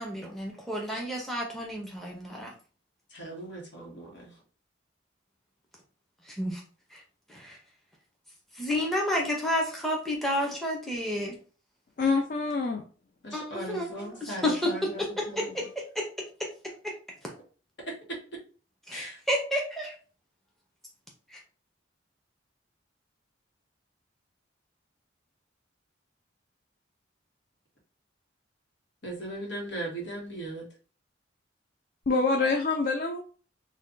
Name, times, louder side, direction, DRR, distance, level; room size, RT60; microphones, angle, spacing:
voice 1, 0.0-2.5 6.3-6.6 6.9-7.0 7.3-7.6 8.6-11.4 13.3-14.7 15.0-16.1 16.4-16.5 16.8-16.9 18.9-19.9 21.3-21.4, left 1 dB, ahead, -1 dB, 0.6 m, -31 dB
voice 2, 3.1-4.3 13.2-15.7 18.9-19.2 29.0-30.7, right 1 dB, 65° left, -2 dB, 1.3 m, -38 dB
voice 3, 12.0-12.9 32.1-33.2, left 4 dB, 45° left, 3 dB, 0.4 m, -26 dB
3.3 x 2.2 x 3.8 m, 0.39 s
head